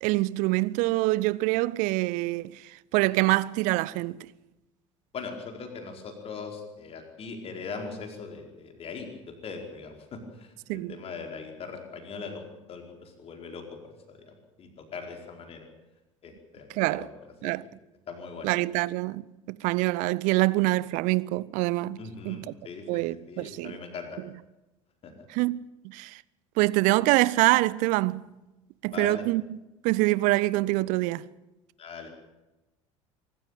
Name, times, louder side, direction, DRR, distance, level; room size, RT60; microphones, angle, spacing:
voice 1, 0.0-2.6 2.9-4.3 10.7-10.9 16.8-17.1 17.4-17.6 18.4-19.2 19.5-22.4 22.9-23.8 25.3-26.2 26.6-28.3 28.8-29.4 29.8-31.2, right 20 dB, 50° right, 0.7 m, -25 dB
voice 2, 5.1-15.7 16.2-17.1 17.4-17.5 18.1-18.5 22.0-22.8 23.1-24.2 25.0-25.3 28.9-29.2 31.8-32.1, left 5 dB, 35° left, 4.7 m, -40 dB
24.5 x 13.5 x 9.1 m
figure-of-eight pair, 65°, 16 cm